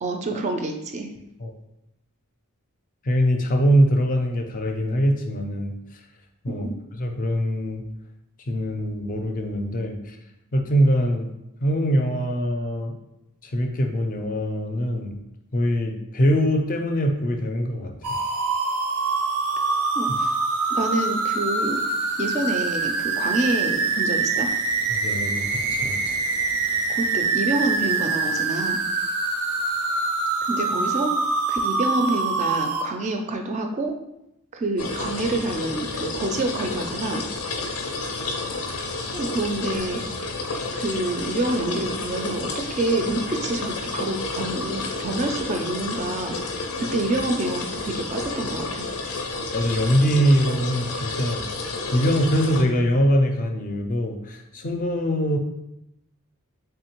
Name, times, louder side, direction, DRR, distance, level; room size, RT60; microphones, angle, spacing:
voice 1, 0.0-1.1 6.5-6.7 20.0-20.3 20.7-21.8 22.2-24.5 26.6-28.8 30.5-31.1 31.5-34.0 34.5-37.3 39.1-40.0 40.7-46.4 46.9-48.9, right 2 dB, 30° right, 4 dB, 0.3 m, -27 dB
voice 2, 3.0-5.7 6.4-6.7 7.0-7.8 8.5-10.2 10.5-11.3 11.6-12.9 13.4-15.2 15.5-17.9 24.9-25.4 25.7-26.1 49.5-55.4, equal, 40° left, 4 dB, 0.4 m, -23 dB
sound 1, 18.0-32.8, right 3 dB, 85° right, 0.5 m, -25 dB
sound 2, 34.8-52.6, left 3 dB, 85° left, 0.5 m, -30 dB
3.5 x 3.4 x 2.9 m, 0.86 s
head